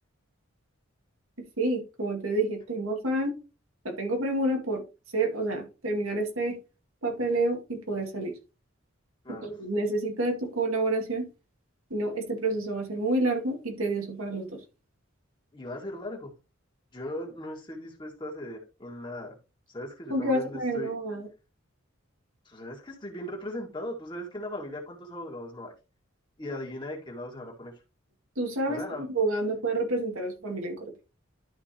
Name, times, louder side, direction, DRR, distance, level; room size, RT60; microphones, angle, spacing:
voice 1, 1.6-3.3 3.8-4.8 5.1-6.6 7.0-8.3 9.4-11.3 11.9-14.5 20.1-21.3 28.4-28.8 29.1-30.9, right 2 dB, 80° right, 1 dB, 2.2 m, -28 dB
voice 2, 15.5-16.3 16.9-19.4 19.7-20.9 22.5-25.7 26.4-27.7 28.7-29.0, left 1 dB, 20° left, -1 dB, 2.0 m, -38 dB
12.0 x 4.5 x 2.9 m, 0.30 s
head